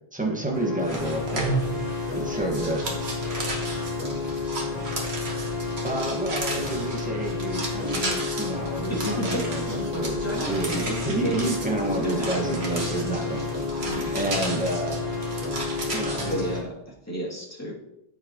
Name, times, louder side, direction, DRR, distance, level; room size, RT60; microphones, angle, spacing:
voice 1, 0.1-1.5 2.1-2.8 5.8-9.6 9.9-10.2 10.5-13.5 13.8-15.0 15.9-16.4, right 2 dB, 10° right, -1 dB, 1.5 m, -30 dB
sound 1, 0.5-16.6, left 4 dB, 40° left, 1.8 m, -31 dB
sound 2, 0.8-16.6, right 2 dB, 85° right, 1.8 m, -34 dB
voice 2, 2.0-2.5 3.2-5.4, left 3 dB, 75° left, 1 dB, 1.9 m, -49 dB
voice 3, 8.9-11.5 12.0-13.3 13.8-14.2 16.3-16.7 17.1-17.7, right 1 dB, 15° left, -5 dB, 2.5 m, -32 dB
13.5 x 4.9 x 3.0 m, 0.81 s
omnidirectional pair, 1.1 m